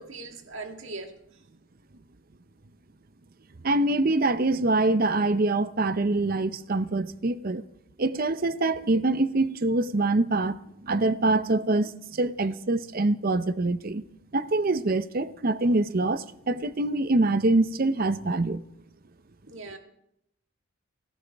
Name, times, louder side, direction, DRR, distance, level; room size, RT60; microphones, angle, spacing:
voice 1, 0.0-1.4 19.5-19.8, right 3 dB, 60° right, 1.9 m, -40 dB
voice 2, 3.6-7.6 8.0-14.0 14.3-18.6, right 2 dB, 40° right, 0.6 m, -25 dB
28.5 x 14.0 x 3.5 m
head